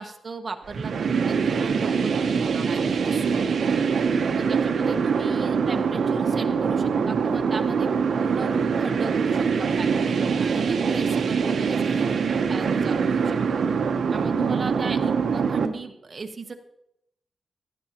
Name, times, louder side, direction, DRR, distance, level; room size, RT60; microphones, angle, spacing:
voice 1, 0.0-3.9 4.3-7.9 8.2-13.6 14.1-16.5, right 4 dB, 35° right, 5 dB, 1.0 m, -36 dB
sound 1, 0.7-15.7, right 6 dB, 70° right, 0.8 m, -23 dB
16.0 x 11.0 x 2.9 m, 0.79 s
wide cardioid pair, 155°, 0 cm